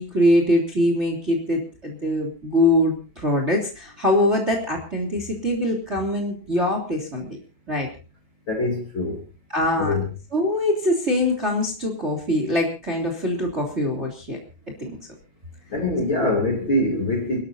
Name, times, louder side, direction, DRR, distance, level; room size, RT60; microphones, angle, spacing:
voice 1, 0.0-7.4 7.7-7.9 9.5-10.0 10.3-14.4 14.8-15.0 16.2-16.3, left 1 dB, 15° right, 2.9 m, -23 dB
voice 2, 8.5-9.2 9.8-10.1 15.7-17.4, left 2 dB, 30° left, 3.1 m, -23 dB
29.0 x 13.0 x 2.7 m
omnidirectional pair, 4.9 m